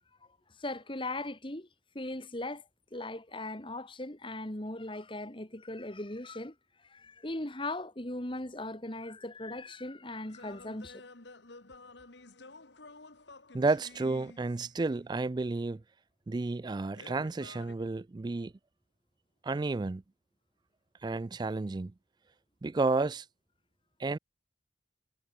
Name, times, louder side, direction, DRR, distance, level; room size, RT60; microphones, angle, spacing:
voice 1, 0.6-1.7 1.9-2.6 2.9-6.5 6.9-11.0, left 2 dB, 30° left, 2.3 m, -38 dB
sound 1, 10.2-15.0 16.9-17.7, left 3 dB, 70° left, 2.2 m, -52 dB
voice 2, 13.5-15.8 16.3-18.5 19.4-20.0 21.0-21.9 22.6-23.2 24.0-24.2, right 3 dB, 25° right, 0.3 m, -31 dB
head